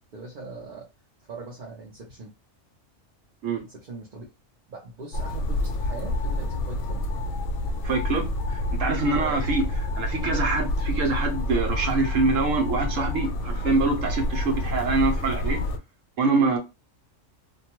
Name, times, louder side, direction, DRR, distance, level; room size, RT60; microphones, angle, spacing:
voice 1, 0.1-0.9 1.3-2.3 3.7-4.2 4.7-7.0 9.1-9.4, right 3 dB, 45° right, 0.8 m, -40 dB
sound 1, 5.1-15.8, left 1 dB, 75° left, 0.9 m, -28 dB
voice 2, 7.8-9.6 9.9-15.6 16.2-16.6, right 3 dB, 80° right, 1.2 m, -25 dB
2.6 x 2.2 x 2.9 m
omnidirectional pair, 1.3 m